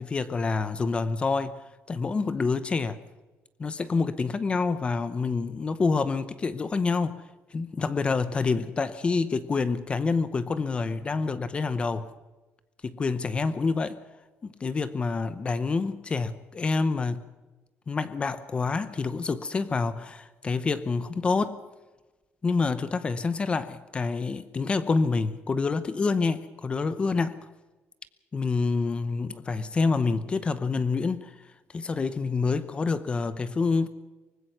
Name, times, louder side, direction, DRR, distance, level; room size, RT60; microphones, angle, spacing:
voice 1, 0.0-1.6 1.9-3.0 3.6-7.2 7.5-12.1 12.8-14.0 14.4-17.2 17.9-21.6 22.4-27.4 28.3-31.3 31.7-33.9, left 4 dB, 25° left, 0.8 m, -27 dB
24.0 x 20.0 x 6.1 m
cardioid pair, 170°, 5 cm